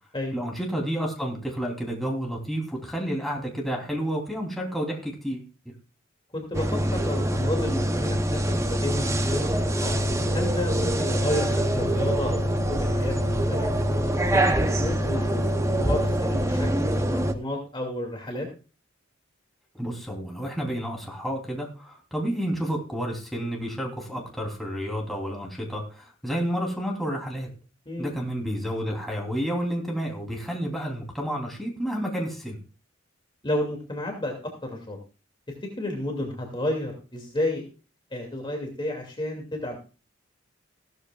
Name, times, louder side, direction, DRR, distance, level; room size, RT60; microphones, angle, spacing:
voice 1, 0.3-5.7 19.7-27.5 28.0-32.6, equal, ahead, -1 dB, 3.2 m, -30 dB
voice 2, 6.3-9.9 10.3-13.7 14.3-15.5 15.8-18.5 27.9-28.1 33.4-34.3 34.6-35.0 35.8-37.6 38.1-39.8, left 1 dB, 25° left, 1 dB, 2.5 m, -31 dB
sound 1, 6.5-17.3, right 1 dB, 15° right, 0.8 m, -24 dB
sound 2, 9.9-16.1, left 2 dB, 60° left, 5.6 m, -39 dB
16.0 x 13.5 x 2.4 m, 0.35 s
head